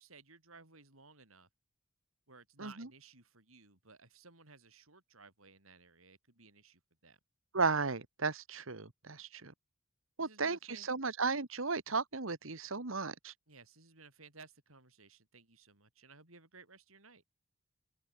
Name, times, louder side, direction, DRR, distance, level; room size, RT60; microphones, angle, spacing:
voice 1, 0.0-1.5 2.3-7.2 10.2-10.9 13.5-17.2, right 4 dB, 85° right, 7.1 m, -58 dB
voice 2, 7.5-9.5 10.2-13.3, right 4 dB, 70° right, 1.7 m, -35 dB
head